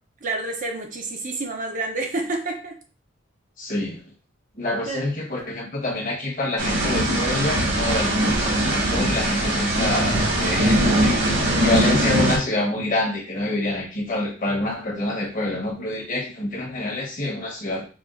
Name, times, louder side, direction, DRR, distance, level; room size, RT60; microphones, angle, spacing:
voice 1, 0.2-2.8 4.9-5.1, right 2 dB, 40° right, 2 dB, 0.6 m, -29 dB
voice 2, 3.6-4.0 4.5-17.9, left 2 dB, 45° left, -1 dB, 1.1 m, -27 dB
sound 1, 6.6-12.4, right 1 dB, 60° right, 1.4 m, -21 dB
5.0 x 2.4 x 2.4 m, 0.37 s
head